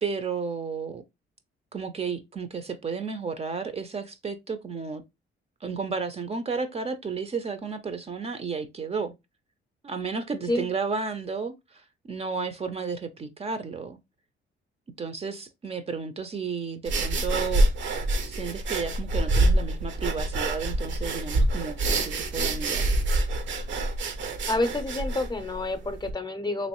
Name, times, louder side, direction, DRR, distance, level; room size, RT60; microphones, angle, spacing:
voice 1, 0.0-1.0 1.7-5.0 5.6-9.1 9.8-14.0 15.0-17.7 18.3-22.9, right 5 dB, 30° right, 0.5 m, -32 dB
sound 1, 16.9-26.1, right 2 dB, 70° right, 0.7 m, -26 dB
voice 2, 24.5-26.7, left 2 dB, 20° left, 0.6 m, -28 dB
3.1 x 2.9 x 2.9 m
cardioid pair, 90°, 20 cm